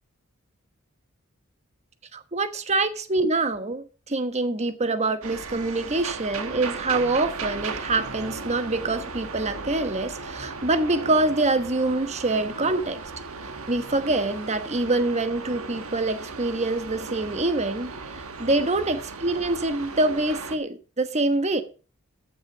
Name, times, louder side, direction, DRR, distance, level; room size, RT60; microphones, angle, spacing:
voice 1, 2.1-13.0 13.7-17.9 18.4-21.6, right 2 dB, 30° right, 1.1 m, -25 dB
sound 1, 5.2-20.6, right 4 dB, 80° right, 1.4 m, -36 dB
14.0 x 6.4 x 5.8 m
head